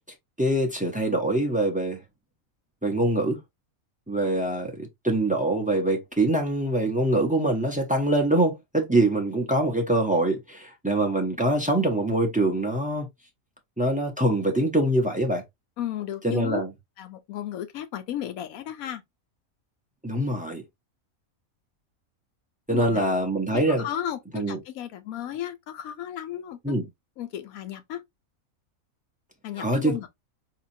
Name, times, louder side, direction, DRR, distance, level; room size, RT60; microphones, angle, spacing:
voice 1, 0.4-2.0 2.8-3.4 4.1-13.1 13.8-15.4 16.2-16.7 20.0-20.6 22.7-23.9 24.3-24.6 26.6-26.9 29.6-30.0, right 1 dB, 10° right, 0.4 m, -24 dB
voice 2, 15.8-16.6 17.0-19.0 22.7-23.0 23.5-26.8 27.2-28.0 29.4-30.1, left 11 dB, 80° left, 1.1 m, -34 dB
4.2 x 2.8 x 2.6 m
omnidirectional pair, 1.5 m